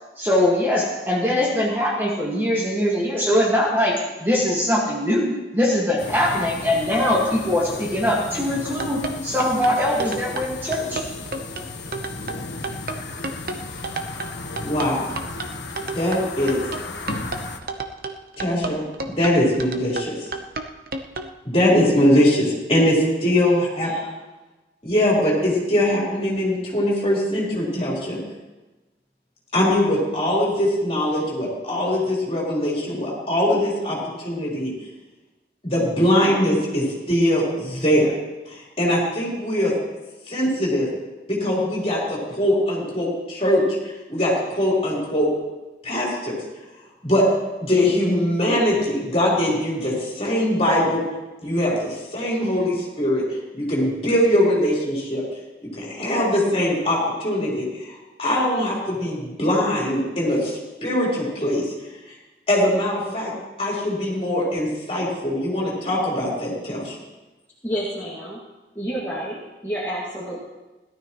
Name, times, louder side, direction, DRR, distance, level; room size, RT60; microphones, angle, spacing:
voice 1, 0.2-11.0, left 1 dB, 10° right, -4 dB, 1.7 m, -22 dB
sound 1, 6.0-17.6, left 3 dB, 85° left, 1.1 m, -35 dB
sound 2, 8.6-21.3, right 3 dB, 55° right, 0.8 m, -31 dB
voice 2, 14.6-15.2 15.9-16.6 18.4-20.2 21.4-23.9 24.8-28.2 29.5-34.0 34.2-34.7 35.6-38.1 38.5-39.7 40.3-40.9 41.3-45.3 45.8-46.4 47.0-47.3 47.6-51.0 51.4-53.2 53.5-55.2 55.6-61.7 62.5-63.3 63.6-67.0, left 1 dB, 35° left, -5 dB, 4.0 m, -22 dB
voice 3, 23.8-24.1 67.6-68.4 68.8-70.4, equal, 15° left, -8 dB, 2.1 m, -30 dB
17.0 x 12.5 x 3.1 m, 1.1 s
head